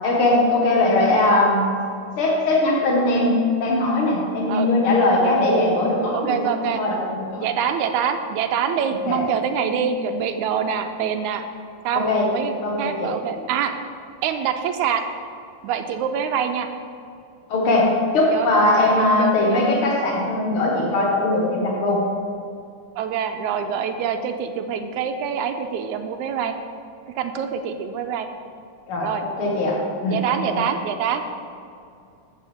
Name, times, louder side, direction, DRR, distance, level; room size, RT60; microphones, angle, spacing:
voice 1, 0.0-1.8 2.2-6.4 6.7-7.4 9.1-9.2 9.6-9.7 11.9-12.3 12.6-13.1 17.5-22.0 28.9-29.1 29.4-29.8 30.0-30.2 30.5-30.6, left 2 dB, 50° left, -3 dB, 2.4 m, -20 dB
voice 2, 6.1-6.8 7.4-11.4 11.8-13.7 14.2-15.0 15.6-16.7 18.3-18.5 19.0-19.6 23.0-26.5 27.2-28.3 29.0-29.2 30.1-31.2, right 7 dB, 80° right, 7 dB, 2.0 m, -25 dB
12.5 x 8.3 x 3.6 m, 2.5 s
omnidirectional pair, 3.5 m